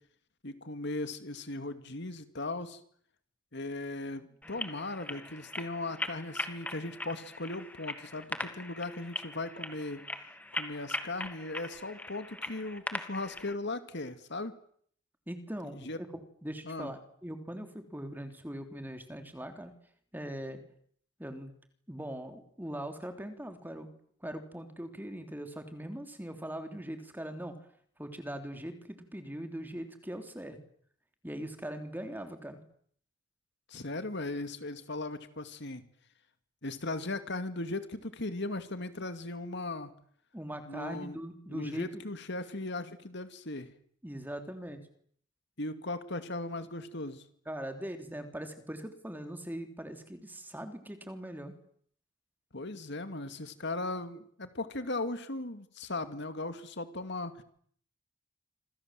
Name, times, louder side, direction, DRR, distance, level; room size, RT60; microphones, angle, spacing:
voice 1, 0.4-2.8 3.5-10.0 10.5-14.5 15.7-16.0 16.7-16.9 33.7-35.8 36.6-39.9 40.7-41.2 41.5-43.7 45.6-47.2 52.5-57.4, left 2 dB, 60° left, 10 dB, 2.3 m, -38 dB
sound 1, 4.4-13.5, left 1 dB, 10° left, 2.1 m, -40 dB
voice 2, 15.3-16.1 16.4-19.7 20.1-20.6 21.2-21.5 21.9-23.9 24.2-27.5 28.0-30.6 31.2-32.6 40.3-42.0 44.0-44.8 47.4-51.5, right 1 dB, 10° right, 6 dB, 3.4 m, -41 dB
27.5 x 26.5 x 7.7 m, 0.63 s
head